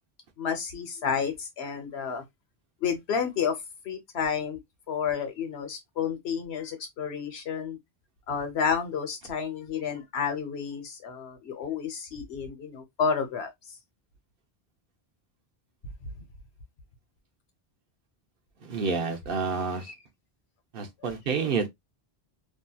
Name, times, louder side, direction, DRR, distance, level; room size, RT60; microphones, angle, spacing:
voice 1, 0.4-2.2 2.8-3.6 3.8-4.6 4.9-7.8 8.3-13.5 19.9-20.0 21.0-21.1, left 6 dB, 85° left, 1.1 m, -30 dB
voice 2, 18.6-19.9 20.7-21.7, right 5 dB, 65° right, 0.9 m, -29 dB
2.8 x 2.7 x 2.2 m
omnidirectional pair, 1.1 m